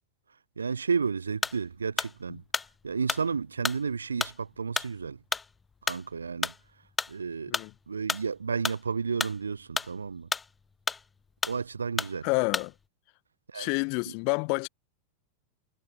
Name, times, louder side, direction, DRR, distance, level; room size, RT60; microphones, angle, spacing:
voice 1, 0.6-2.4 2.8-5.2 5.8-6.5 7.1-7.6 7.9-10.3 11.4-12.3 13.5-13.7, right 5 dB, 75° right, 0.6 m, -32 dB
sound 1, 1.3-1.6 2.0-7.2 7.5-8.8 9.1-10.6 10.9-11.6 12.0-12.2 12.5-12.7, left 4 dB, 15° left, 0.4 m, -32 dB
voice 2, 12.2-12.7 13.5-14.7, left 37 dB, 45° left, 1.9 m, -28 dB
figure-of-eight pair, 90°, 0 cm